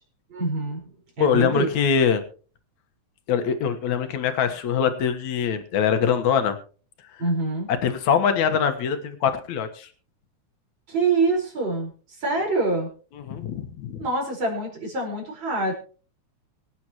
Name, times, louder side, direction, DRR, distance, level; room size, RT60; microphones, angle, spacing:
voice 1, 0.3-0.8 1.2-1.7 7.2-7.7 10.9-12.9 14.0-15.7, right 3 dB, 40° right, -1 dB, 5.5 m, -25 dB
voice 2, 1.2-2.2 3.3-6.6 7.7-9.9 13.3-14.0, left 7 dB, 70° left, 8 dB, 2.6 m, -23 dB
24.5 x 8.8 x 3.0 m, 0.40 s
omnidirectional pair, 3.4 m